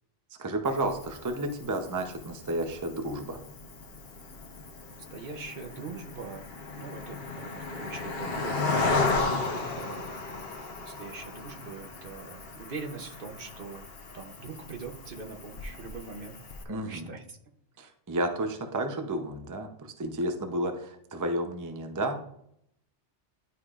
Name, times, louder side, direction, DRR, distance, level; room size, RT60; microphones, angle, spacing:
voice 1, 0.4-3.4 16.7-17.1 17.8-22.2, right 1 dB, 20° right, 6 dB, 0.5 m, -32 dB
Cricket, 0.6-16.6, left 3 dB, 55° left, 1.1 m, -35 dB
voice 2, 5.1-6.4 6.8-10.2 10.8-13.9 14.1-16.4 16.6-17.4, right 4 dB, 55° right, 4 dB, 0.9 m, -42 dB
11.5 x 4.8 x 2.4 m, 0.72 s
omnidirectional pair, 1.2 m